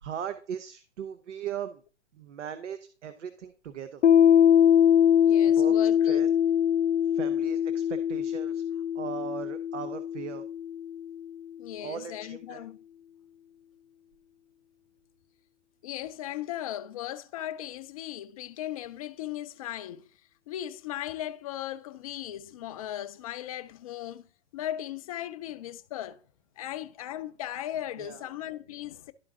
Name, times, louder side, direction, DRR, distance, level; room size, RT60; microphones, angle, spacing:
voice 1, 0.0-1.8 2.1-4.0 5.6-5.7 6.0-6.3 7.0-10.5 11.8-12.7 28.0-28.2, right 8 dB, 85° right, 0.7 m, -38 dB
Piano, 4.0-11.3, left 9 dB, 85° left, 0.5 m, -23 dB
voice 2, 5.2-6.3 11.6-12.8 15.8-20.1 20.5-24.3 24.5-26.2 26.6-29.1, left 12 dB, 30° left, 0.4 m, -37 dB
11.5 x 3.8 x 3.6 m
hypercardioid pair, 130°, 36 cm